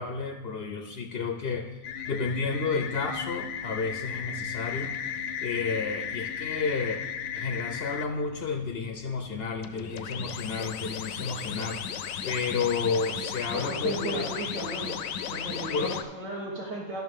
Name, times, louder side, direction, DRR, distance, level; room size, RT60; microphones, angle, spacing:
voice 1, 0.0-1.7 2.1-4.9 5.4-7.0 7.3-14.3 15.7-15.9, left 4 dB, 55° left, 4 dB, 0.7 m, -31 dB
sound 1, 1.8-8.1 9.6-16.0, left 8 dB, 75° left, 1.0 m, -35 dB
voice 2, 13.5-15.0 15.3-17.0, right 2 dB, 60° right, -5 dB, 1.6 m, -35 dB
12.5 x 5.9 x 3.6 m, 1.1 s
omnidirectional pair, 1.5 m